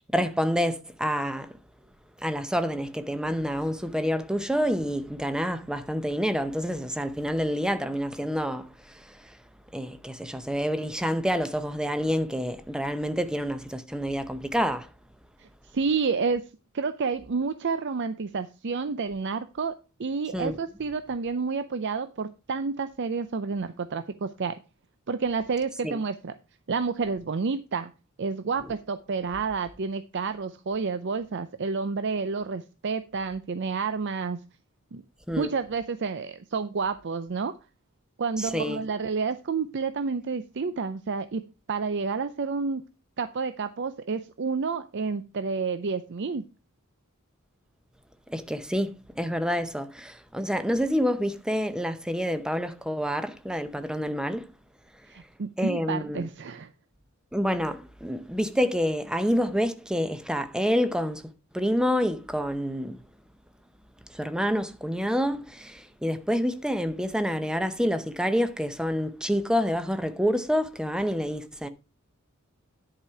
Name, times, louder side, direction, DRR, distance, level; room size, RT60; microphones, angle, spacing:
voice 1, 0.1-1.5 2.2-9.3 9.7-14.9 20.3-20.6 25.8-26.0 35.3-35.5 38.4-38.8 48.3-54.4 55.6-56.3 57.3-61.2 61.5-63.0 64.1-71.7, equal, 5° right, 0.7 m, -28 dB
voice 2, 15.7-16.5 16.7-24.6 25.1-26.3 26.7-27.9 28.2-34.4 34.9-35.0 35.3-37.6 38.2-41.4 41.7-42.9 43.2-46.5 55.1-56.7, right 5 dB, 55° right, 0.5 m, -30 dB
10.5 x 4.9 x 5.7 m
head